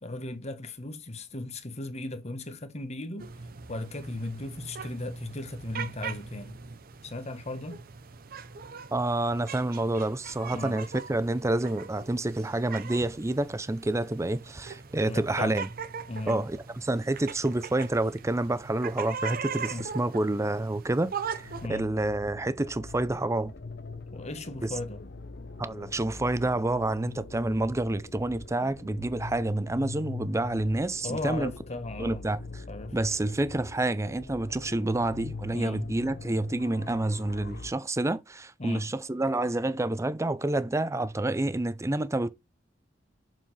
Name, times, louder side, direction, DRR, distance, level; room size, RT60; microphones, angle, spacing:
voice 1, 0.0-3.3 3.7-6.6 7.0-7.8 10.5-10.8 15.1-15.6 16.1-16.5 19.7-19.9 21.6-21.9 24.1-25.0 31.0-32.2 32.7-33.0 35.5-35.8 38.6-38.8, left 2 dB, 35° left, 1.2 m, -36 dB
sound 1, 3.2-21.7, right 5 dB, 50° right, 0.7 m, -40 dB
voice 2, 8.9-15.7 16.3-23.5 24.6-24.7 25.6-31.5 32.0-32.4 32.9-42.3, right 2 dB, 15° right, 0.5 m, -28 dB
sound 2, 21.3-37.7, left 3 dB, 60° left, 0.9 m, -43 dB
6.9 x 6.0 x 3.3 m
head